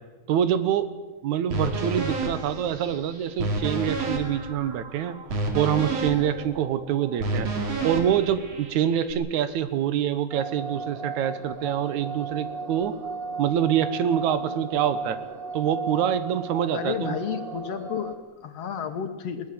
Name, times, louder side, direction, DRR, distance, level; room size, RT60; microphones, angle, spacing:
voice 1, 0.3-0.9 1.2-5.2 5.5-7.5 7.8-12.9 13.4-15.2 15.5-17.2, right 10 dB, 75° right, 13 dB, 2.4 m, -25 dB
sound 1, 1.5-9.1, right 2 dB, 60° right, 3.9 m, -30 dB
sound 2, 10.3-18.2, right 4 dB, 25° right, 1.2 m, -35 dB
voice 2, 16.7-19.5, left 8 dB, 60° left, 8 dB, 2.3 m, -32 dB
21.0 x 18.5 x 7.8 m, 1.2 s
omnidirectional pair, 3.4 m